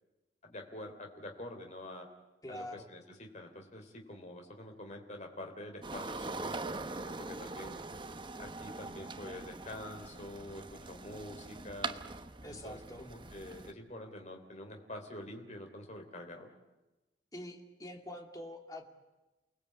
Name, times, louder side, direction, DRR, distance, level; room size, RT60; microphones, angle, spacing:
voice 1, 0.4-2.1 2.5-7.7 8.4-12.0 12.5-16.5, left 1 dB, 40° left, 3 dB, 3.3 m, -46 dB
voice 2, 2.4-2.9 12.4-13.1 17.3-18.9, left 1 dB, 20° left, 2 dB, 2.7 m, -45 dB
sound 1, 5.8-13.7, right 3 dB, 25° right, 1.0 m, -42 dB
29.5 x 19.5 x 8.6 m, 1.1 s
head